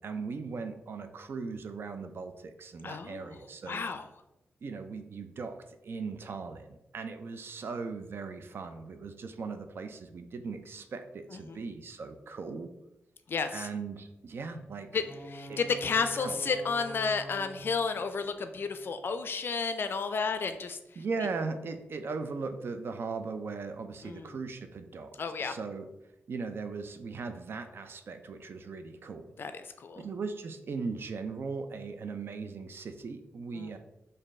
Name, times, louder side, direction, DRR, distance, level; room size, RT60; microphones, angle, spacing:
voice 1, 0.0-3.8 4.6-5.6 5.8-12.7 13.5-14.9 15.5-15.6 16.2-16.4 21.0-25.1 25.4-25.9 26.3-29.3 30.0-33.8, right 4 dB, 60° right, 8 dB, 0.4 m, -38 dB
voice 2, 2.8-3.4 3.7-4.1 11.3-11.6 13.3-13.7 14.9-15.0 15.3-20.8 24.0-24.3 25.2-25.5 29.4-30.1 33.6-33.8, left 5 dB, 55° left, 9 dB, 0.3 m, -32 dB
sound 1, 15.0-19.0, equal, ahead, 0.7 m, -46 dB
4.2 x 2.6 x 3.1 m, 0.92 s
cardioid pair, 80°, 4 cm